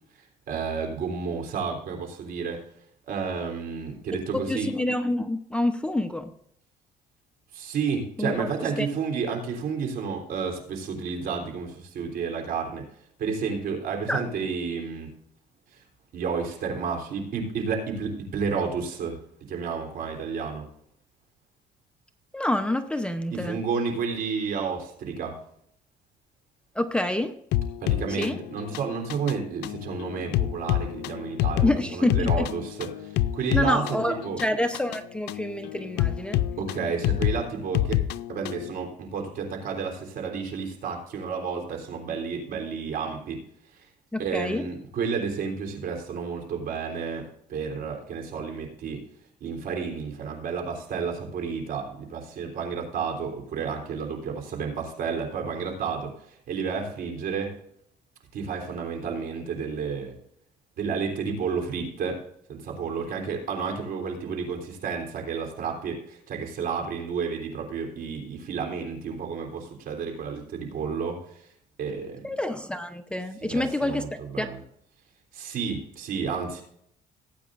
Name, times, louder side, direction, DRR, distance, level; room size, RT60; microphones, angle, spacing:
voice 1, 0.5-2.6 3.1-4.7 7.5-12.9 13.2-15.1 16.1-19.2 19.5-20.7 23.3-25.4 27.8-34.4 36.6-38.0 38.3-43.4 44.2-49.0 49.4-57.5 58.3-60.2 60.8-62.2 62.5-71.5 71.8-72.2 73.5-74.6 75.3-76.6, right 5 dB, 60° right, 2 dB, 3.5 m, -31 dB
voice 2, 4.5-6.3 8.2-8.5 8.8-8.9 14.1-14.2 22.3-23.6 26.7-27.3 28.1-28.4 31.6-32.4 33.5-36.4 44.1-44.7 72.2-74.5, left 1 dB, 5° left, 7 dB, 0.8 m, -27 dB
sound 1, 27.5-38.7, left 12 dB, 85° left, 0.5 m, -28 dB
18.0 x 9.0 x 2.5 m, 0.70 s
cardioid pair, 110°, 17 cm